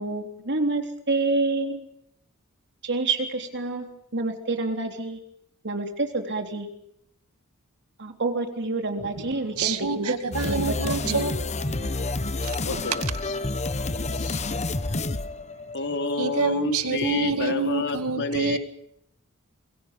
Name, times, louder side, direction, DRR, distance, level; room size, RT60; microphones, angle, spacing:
voice 1, 0.0-1.9 2.8-3.9 4.1-5.2 5.6-6.7 8.0-10.1 10.4-11.2, right 3 dB, 55° right, 5 dB, 3.6 m, -28 dB
voice 2, 9.6-11.4 11.8-12.8 13.8-14.1 14.9-15.0 16.2-18.6, right 3 dB, 80° right, 10 dB, 2.0 m, -28 dB
sound 1, 10.3-16.1, left 2 dB, 30° left, 1.1 m, -29 dB
voice 3, 12.6-13.0 14.1-14.4 15.7-18.6, left 3 dB, 55° left, 5 dB, 3.3 m, -29 dB
28.5 x 23.0 x 5.4 m, 0.71 s
head